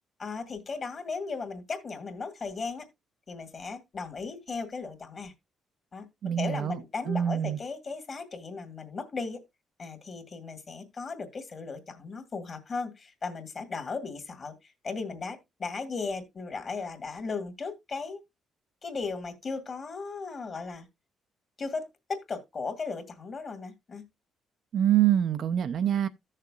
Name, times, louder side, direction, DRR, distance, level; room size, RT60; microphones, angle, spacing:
voice 1, 0.2-2.9 3.3-5.3 5.9-6.1 6.4-9.4 9.8-18.2 18.8-20.9 21.6-24.0, left 4 dB, 40° left, 2.1 m, -36 dB
voice 2, 6.2-6.8 7.1-7.6 24.7-26.1, right 10 dB, 65° right, 0.6 m, -25 dB
15.0 x 6.6 x 2.4 m
cardioid pair, 90°, 0 cm